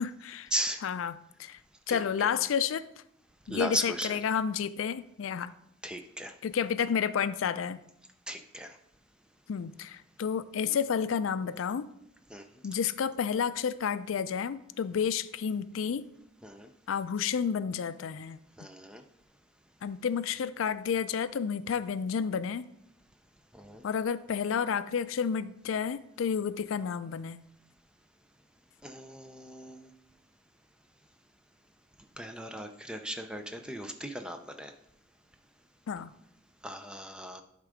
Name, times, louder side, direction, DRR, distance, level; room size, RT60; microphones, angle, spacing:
voice 1, 0.0-0.5 0.8-1.6 1.9-2.9 3.5-5.5 6.4-7.8 9.5-11.9 12.6-16.1 16.9-18.4 19.8-22.7 23.8-27.4 35.9-36.1, left 7 dB, 90° left, 15 dB, 0.4 m, -31 dB
voice 2, 3.5-4.2 5.8-6.3 8.3-8.8 12.3-12.4 16.4-16.7 18.6-19.0 23.5-23.8 28.8-29.9 32.2-34.7 36.6-37.4, equal, 5° right, 7 dB, 0.5 m, -37 dB
11.0 x 3.7 x 5.0 m, 0.77 s
head